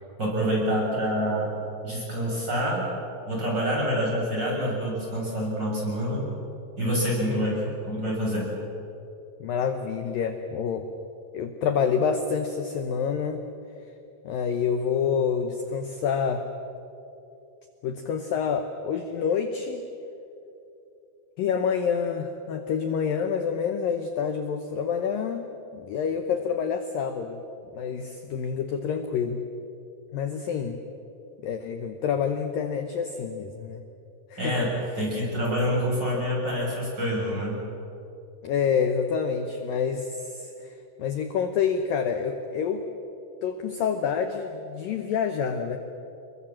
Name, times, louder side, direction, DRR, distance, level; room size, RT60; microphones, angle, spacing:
voice 1, 0.2-1.5 1.8-2.9 3.3-6.3 6.8-8.5 34.4-37.6, equal, 20° right, -4 dB, 7.8 m, -27 dB
voice 2, 7.2-7.8 9.4-10.9 11.3-13.4 14.2-16.5 17.8-19.8 21.4-25.5 25.7-27.4 27.7-29.4 30.1-30.8 31.4-33.8 34.3-34.7 38.4-40.7 41.0-42.9 43.4-45.8, left 6 dB, 75° left, 7 dB, 2.1 m, -27 dB
27.5 x 21.5 x 7.6 m, 2.8 s
omnidirectional pair, 5.4 m